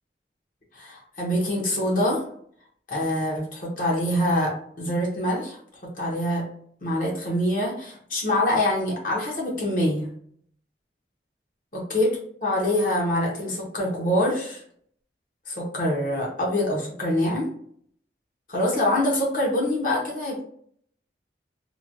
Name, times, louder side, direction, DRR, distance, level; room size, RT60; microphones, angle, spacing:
voice 1, 0.7-2.2 2.9-6.4 6.8-10.1 11.7-12.1 12.4-14.6 15.5-17.5 18.5-20.4, left 1 dB, 45° left, -3 dB, 0.8 m, -25 dB
3.0 x 2.1 x 2.5 m, 0.62 s
head